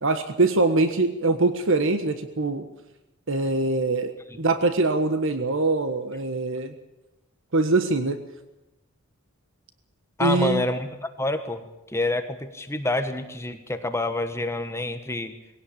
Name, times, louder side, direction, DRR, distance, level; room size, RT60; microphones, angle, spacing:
voice 1, 0.0-2.7 3.3-6.7 7.5-8.2 10.2-10.6, right 2 dB, 65° right, 9 dB, 1.5 m, -23 dB
voice 2, 10.2-15.3, left 2 dB, 15° left, 8 dB, 1.3 m, -28 dB
21.0 x 17.0 x 8.7 m, 0.96 s
head